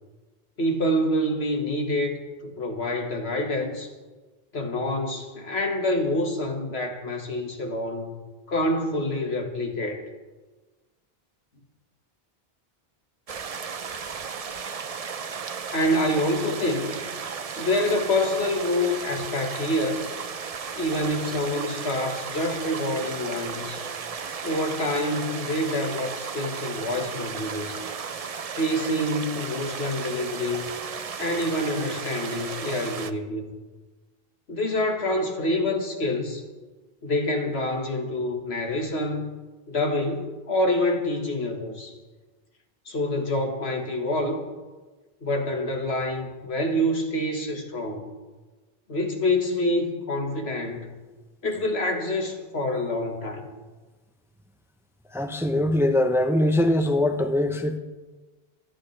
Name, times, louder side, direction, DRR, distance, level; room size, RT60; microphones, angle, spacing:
voice 1, 0.6-3.9 4.5-8.2 8.5-10.0 15.7-17.0 17.6-20.0 20.8-23.8 24.4-27.9 28.6-30.7 31.2-33.5 34.5-36.4 37.0-39.3 39.7-41.9 42.9-44.5 45.2-48.1 48.9-50.9 51.4-53.5, left 1 dB, 85° left, 1.9 m, -27 dB
sound 1, 13.3-33.1, right 6 dB, 45° right, 0.6 m, -35 dB
voice 2, 55.1-57.8, left 1 dB, 5° right, 0.8 m, -22 dB
26.0 x 11.0 x 3.3 m
omnidirectional pair, 1.0 m